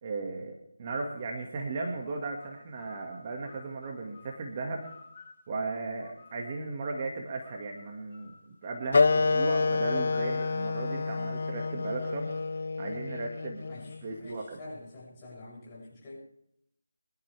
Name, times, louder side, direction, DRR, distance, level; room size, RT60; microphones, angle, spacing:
voice 1, 0.0-4.9 5.5-8.3 8.6-12.3 12.8-13.7 14.0-14.6, right 3 dB, 30° right, 1 dB, 1.9 m, -36 dB
sound 1, 2.0-6.8 7.4-11.9, left 4 dB, 35° left, 3.7 m, -56 dB
Wind instrument woodwind instrument, 8.9-14.0, left 4 dB, 50° left, 0.6 m, -28 dB
voice 2, 13.6-16.2, left 2 dB, 20° left, -7 dB, 7.4 m, -47 dB
24.5 x 12.5 x 3.4 m, 0.74 s
figure-of-eight pair, 165°, 0 cm